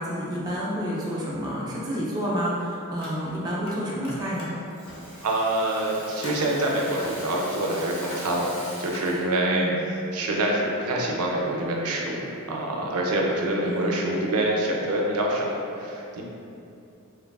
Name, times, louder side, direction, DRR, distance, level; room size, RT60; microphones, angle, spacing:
voice 1, 0.0-4.5 9.4-9.8 13.6-14.0, equal, 15° right, -6 dB, 0.4 m, -29 dB
Car, 3.0-3.8 4.0-9.1, left 1 dB, 65° left, 0.6 m, -41 dB
Rattle (instrument), 4.3-9.4, equal, 10° left, 0.7 m, -43 dB
voice 2, 5.2-9.7 10.1-16.2, right 1 dB, 85° right, -1 dB, 0.4 m, -26 dB
3.1 x 2.3 x 2.2 m, 2.7 s
head